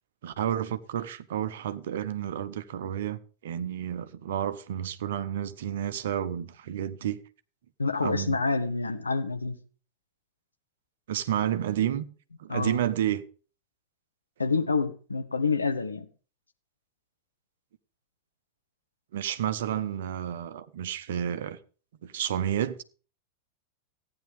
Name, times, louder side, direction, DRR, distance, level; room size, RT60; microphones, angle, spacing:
voice 1, 0.2-7.2 8.0-8.4 11.1-12.0 12.4-13.2 19.1-21.6 22.0-22.8, right 10 dB, 60° right, 0.9 m, -30 dB
voice 2, 7.8-9.6 12.5-12.8 14.4-16.1, left 4 dB, 80° left, 1.3 m, -27 dB
15.0 x 9.8 x 3.4 m
figure-of-eight pair, 90°, 0 cm